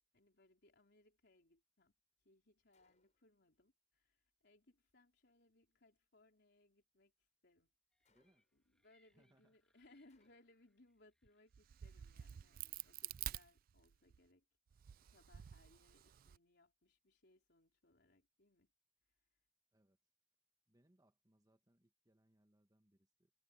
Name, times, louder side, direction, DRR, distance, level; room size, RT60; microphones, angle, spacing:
voice 1, 0.1-7.7 8.0-8.2 8.5-18.7 19.1-19.3, left 2 dB, 65° left, 4.0 m, -70 dB
Gunshot gunfire, 2.7-3.4 8.0-8.7 10.1-10.8, left 3 dB, 40° left, 5.8 m, -81 dB
sound 1, 7.9-13.3, left 1 dB, 5° left, 3.0 m, -83 dB
voice 2, 8.1-8.5 9.1-9.5 19.7-20.0 20.7-23.3, right 1 dB, 20° right, 1.6 m, -75 dB
Crack, 11.5-14.2 14.7-16.4, right 12 dB, 50° right, 0.3 m, -49 dB
head